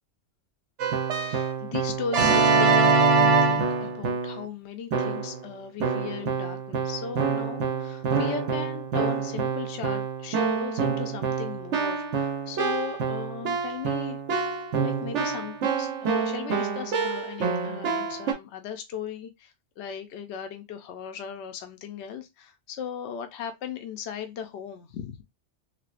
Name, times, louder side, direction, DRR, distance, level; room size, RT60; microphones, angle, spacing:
Keyboard (musical), 0.8-4.5 4.9-5.4 5.8-18.3, right 5 dB, 80° right, 1.1 m, -25 dB
voice 1, 1.2-14.2 14.7-25.2, left 7 dB, 75° left, 0.9 m, -37 dB
3.4 x 3.2 x 2.4 m
omnidirectional pair, 1.2 m